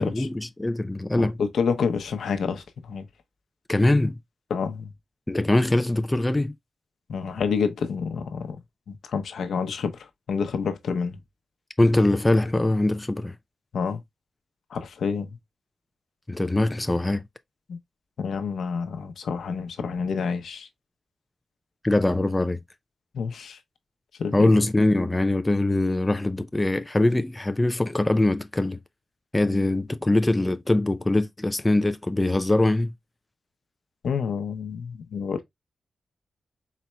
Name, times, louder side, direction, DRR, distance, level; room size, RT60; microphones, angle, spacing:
voice 1, 0.0-1.3 3.7-4.2 5.3-6.5 11.8-13.4 16.3-17.2 21.8-22.6 24.3-28.8 29.3-32.9, left 2 dB, 10° left, 0.3 m, -22 dB
voice 2, 1.2-3.1 4.5-4.9 7.1-8.6 8.9-11.2 13.7-14.0 14.7-15.4 17.7-17.8 18.2-20.7 23.1-23.6 24.2-24.5 34.0-35.4, left 6 dB, 85° left, 0.7 m, -28 dB
4.2 x 4.1 x 2.2 m
wide cardioid pair, 155°, 0 cm